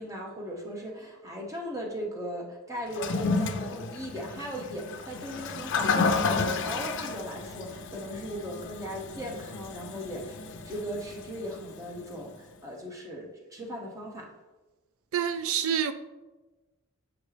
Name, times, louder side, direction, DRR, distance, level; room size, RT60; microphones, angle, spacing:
voice 1, 0.0-10.4 10.6-14.3, equal, 15° right, 0.9 m, -38 dB
Toilet flush, 2.9-12.2, left 4 dB, 55° left, 0.5 m, -32 dB
voice 2, 15.1-15.9, right 8 dB, 65° right, 0.4 m, -27 dB
7.1 x 5.3 x 3.3 m
head